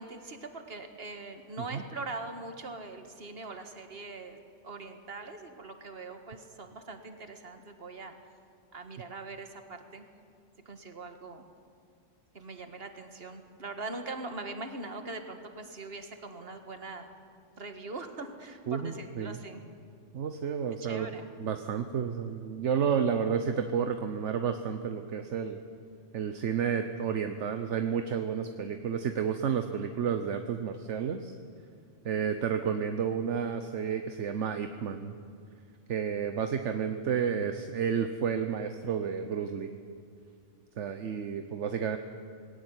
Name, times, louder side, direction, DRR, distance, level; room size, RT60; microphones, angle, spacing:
voice 1, 0.0-4.4 4.6-8.1 8.7-10.0 10.7-11.4 12.3-17.1 17.6-19.6 20.8-21.3, right 3 dB, 50° right, 6 dB, 1.9 m, -42 dB
voice 2, 18.7-19.4 20.1-21.1 21.4-25.6 26.1-31.3 32.0-35.1 35.9-39.7 40.8-42.0, right 7 dB, 70° right, 7 dB, 1.2 m, -31 dB
20.0 x 17.5 x 9.7 m, 2.3 s
omnidirectional pair, 1.3 m